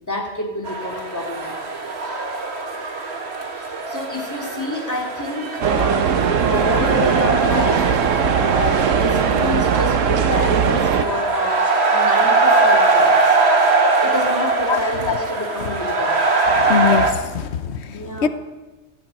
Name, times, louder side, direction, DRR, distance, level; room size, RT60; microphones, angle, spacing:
voice 1, 0.0-1.5 1.8-1.9 3.5-13.4 14.0-16.2 17.9-18.3, left 1 dB, 15° left, -1 dB, 2.9 m, -28 dB
sound 1, 0.6-17.1, right 3 dB, 55° right, 1.9 m, -21 dB
sound 2, 5.6-11.0, right 7 dB, 85° right, 1.3 m, -19 dB
voice 2, 16.5-18.3, left 7 dB, 60° left, 11 dB, 1.2 m, -22 dB
16.0 x 8.1 x 9.0 m, 1.2 s
omnidirectional pair, 1.3 m